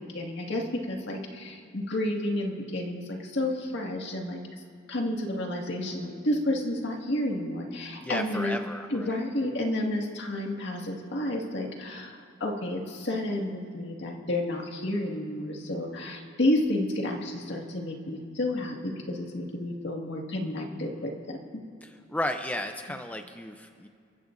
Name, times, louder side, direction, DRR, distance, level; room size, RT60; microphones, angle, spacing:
voice 1, 0.1-4.4 4.9-8.6 8.9-21.4, left 1 dB, 60° left, 0 dB, 2.0 m, -31 dB
voice 2, 8.0-9.2 21.8-23.9, left 1 dB, 10° left, 6 dB, 0.5 m, -34 dB
30.0 x 15.0 x 2.6 m, 2.3 s
head